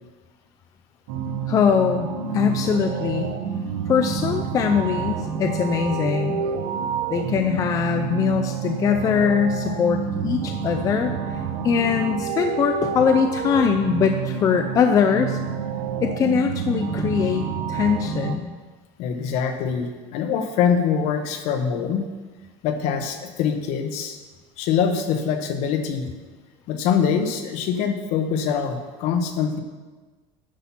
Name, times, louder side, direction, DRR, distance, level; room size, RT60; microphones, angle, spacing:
sound 1, 1.1-18.4, right 6 dB, 80° right, 0.9 m, -28 dB
voice 1, 1.5-3.3 3.9-6.4 7.1-11.4 11.6-15.4 16.0-18.5, left 7 dB, 25° left, 6 dB, 0.4 m, -22 dB
voice 2, 19.0-22.1 22.6-24.2 24.6-26.1 26.7-29.6, left 7 dB, 55° left, 6 dB, 1.1 m, -24 dB
10.5 x 5.8 x 5.8 m, 1.3 s
cardioid pair, 160°, 14 cm